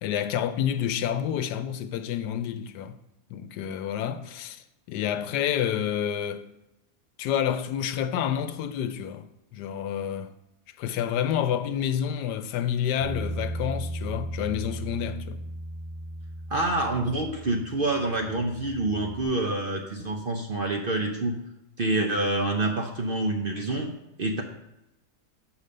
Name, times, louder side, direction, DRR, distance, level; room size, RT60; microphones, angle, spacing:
voice 1, 0.0-3.0 3.3-6.4 7.2-9.3 9.5-10.3 10.8-15.4, left 9 dB, 90° left, 1.2 m, -29 dB
Bass guitar, 13.0-19.2, right 1 dB, 5° right, 3.4 m, -36 dB
voice 2, 16.5-21.4 21.8-24.4, right 2 dB, 50° right, 0.7 m, -27 dB
6.8 x 4.9 x 6.5 m
omnidirectional pair, 1.7 m